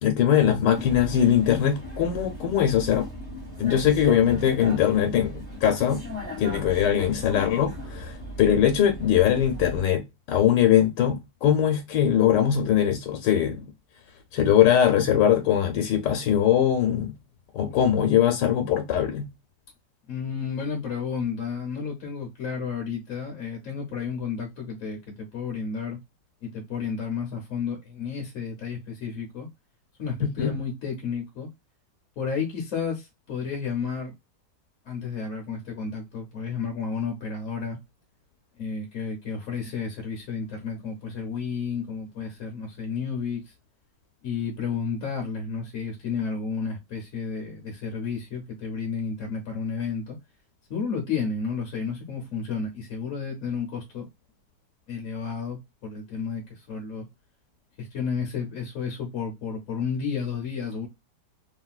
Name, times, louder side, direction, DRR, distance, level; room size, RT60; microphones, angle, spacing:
voice 1, 0.0-3.1 3.6-6.0 6.4-13.7 14.3-17.1 17.5-19.3 30.2-30.5, left 10 dB, 90° left, 1.3 m, -21 dB
Vehicle, 0.7-9.8, equal, 5° left, 1.4 m, -37 dB
voice 2, 20.1-26.0 26.4-29.5 30.0-31.5 32.2-34.1 34.9-37.8 38.6-43.5 44.2-50.2 50.7-54.1 54.9-57.1 57.8-60.9, left 5 dB, 60° left, 1.0 m, -32 dB
3.0 x 2.7 x 2.3 m
omnidirectional pair, 1.8 m